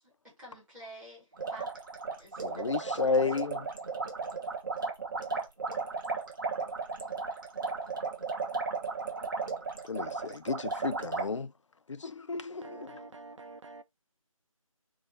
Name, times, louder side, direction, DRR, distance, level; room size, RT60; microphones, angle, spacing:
voice 1, 0.2-1.7 2.1-3.6, right 1 dB, 5° right, 1.0 m, -50 dB
sound 1, 1.3-11.3, right 4 dB, 35° right, 0.9 m, -35 dB
voice 2, 2.4-3.7 9.9-11.5 11.9-13.0, left 4 dB, 60° left, 0.4 m, -32 dB
voice 3, 12.6-13.8, right 3 dB, 60° right, 0.5 m, -47 dB
4.5 x 2.3 x 4.0 m
figure-of-eight pair, 160°, 18 cm